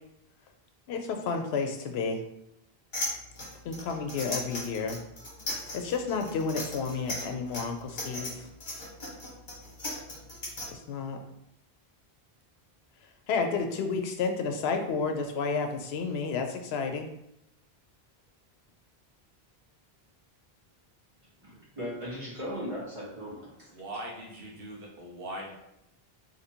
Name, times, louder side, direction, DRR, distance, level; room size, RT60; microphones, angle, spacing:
voice 1, 0.9-2.2 3.6-5.0 5.7-8.5 10.7-11.2 13.3-17.1, left 5 dB, 80° left, 5 dB, 0.8 m, -31 dB
sound 1, 2.9-10.7, left 1 dB, 50° left, 1.2 m, -37 dB
voice 2, 21.4-24.0, equal, 30° right, -6 dB, 1.3 m, -38 dB
voice 3, 23.7-25.5, right 1 dB, 65° right, -2 dB, 1.0 m, -40 dB
2.9 x 2.6 x 4.3 m, 0.82 s
omnidirectional pair, 1.0 m